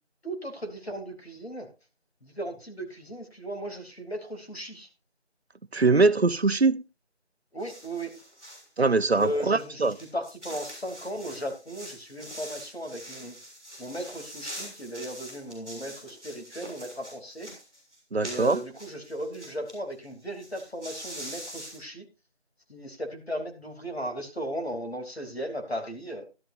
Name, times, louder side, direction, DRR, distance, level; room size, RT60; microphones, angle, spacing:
voice 1, 0.2-1.7 2.2-4.9 7.5-8.1 9.2-13.4 13.8-17.5 18.2-22.0 22.7-26.2, equal, 65° left, 3.1 m, -36 dB
voice 2, 5.7-6.8 8.8-10.0 18.1-18.6, right 3 dB, 65° right, 0.8 m, -22 dB
sound 1, 7.6-8.7 9.1-19.7 20.0-20.1 20.3-21.8, equal, 5° left, 4.3 m, -44 dB
14.0 x 12.0 x 2.6 m
figure-of-eight pair, 175°, 34 cm